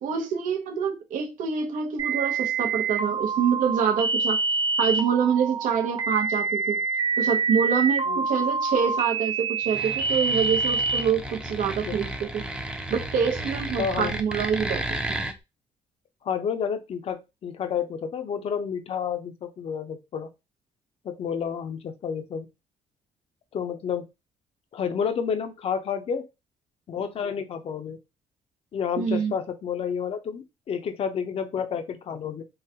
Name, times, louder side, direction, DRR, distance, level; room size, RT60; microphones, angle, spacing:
voice 1, 0.0-4.4 4.8-6.8 7.2-12.4 12.9-15.2 29.0-29.3, right 7 dB, 85° right, 0.6 m, -26 dB
sound 1, 2.0-11.0, right 4 dB, 40° right, 0.9 m, -26 dB
sound 2, 9.7-15.3, right 1 dB, 5° right, 0.5 m, -33 dB
voice 2, 13.8-14.2 16.2-20.3 21.0-22.5 23.5-24.1 24.7-26.2 26.9-28.0 28.7-32.4, left 7 dB, 50° left, 0.5 m, -30 dB
3.8 x 2.1 x 2.7 m
cardioid pair, 110°, 13 cm